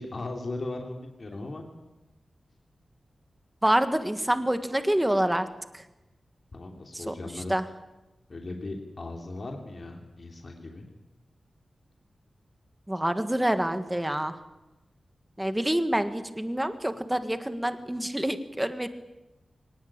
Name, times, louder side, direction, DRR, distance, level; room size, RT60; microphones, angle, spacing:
voice 1, 0.0-1.6 6.5-7.6 8.3-10.8, left 2 dB, 40° left, 2 dB, 3.1 m, -37 dB
voice 2, 3.6-5.5 5.7-5.8 6.9-7.1 7.5-7.6 12.9-14.4 15.4-18.9, right 1 dB, 10° right, 9 dB, 1.5 m, -27 dB
24.0 x 19.0 x 8.7 m, 1.0 s
wide cardioid pair, 165°, 0 cm